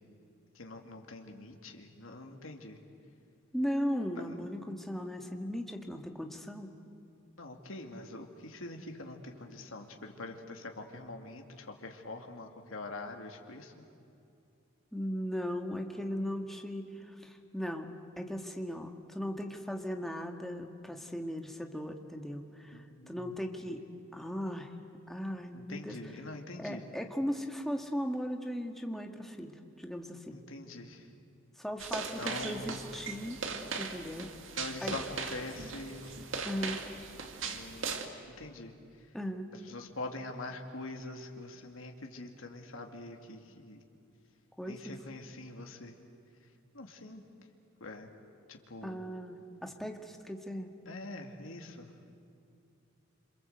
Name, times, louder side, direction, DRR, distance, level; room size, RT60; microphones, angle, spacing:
voice 1, 0.5-2.8 4.3-4.4 7.4-13.7 22.7-23.3 25.5-26.8 30.3-31.1 32.1-32.8 34.5-36.1 36.7-36.8 37.4-38.0 38.4-38.8 39.7-43.8 44.7-45.9 46.7-47.2 47.8-48.1 48.5-49.0 50.9-51.9, left 2 dB, 85° left, 3 dB, 2.4 m, -44 dB
voice 2, 3.5-6.7 14.9-23.8 24.1-24.7 25.1-26.0 26.6-30.4 31.6-33.4 33.8-34.3 34.8-34.9 36.4-36.8 39.1-39.5 44.6-44.9 48.8-50.7, equal, ahead, 3 dB, 1.8 m, -37 dB
sound 1, 31.8-38.1, right 4 dB, 70° right, 2.1 m, -39 dB
27.5 x 27.0 x 8.1 m, 2.6 s
head